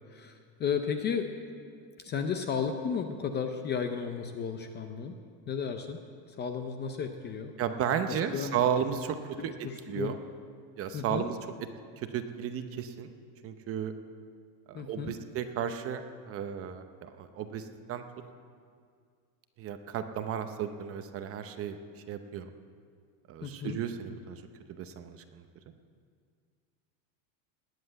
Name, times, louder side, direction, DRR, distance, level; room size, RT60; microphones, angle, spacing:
voice 1, 0.1-1.3 2.0-5.1 5.5-6.0 6.3-7.5 8.1-8.6 9.4-10.1 10.9-11.3 14.7-15.1 23.4-23.8, left 6 dB, 20° left, 6 dB, 0.5 m, -34 dB
voice 2, 7.6-9.2 9.4-9.5 9.9-10.2 10.8-11.4 12.0-13.1 13.4-13.9 14.7-16.0 16.3-18.0 19.6-21.8 22.1-22.5 23.3-24.4 24.7-25.4, right 8 dB, 30° right, 8 dB, 0.7 m, -33 dB
19.5 x 7.8 x 8.8 m, 2.2 s
supercardioid pair, 160°, 48 cm